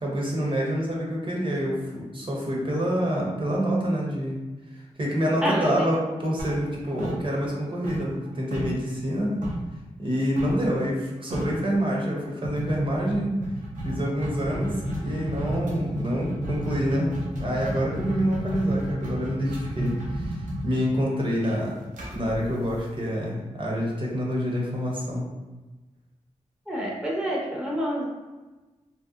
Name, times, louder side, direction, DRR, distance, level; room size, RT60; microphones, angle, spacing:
voice 1, 0.0-4.4 5.0-9.4 10.0-13.4 13.8-17.1 17.4-21.7 22.1-25.3, equal, 40° right, -3 dB, 0.7 m, -27 dB
voice 2, 5.4-5.8 26.7-28.0, equal, 5° right, -4 dB, 0.6 m, -27 dB
sound 1, 6.4-7.6 7.8-9.7 10.4-10.7 11.0-11.1 11.3-11.7 12.4-23.2, right 1 dB, 85° right, 0.5 m, -32 dB
2.7 x 2.0 x 2.3 m, 1.2 s
cardioid pair, 45°, 13 cm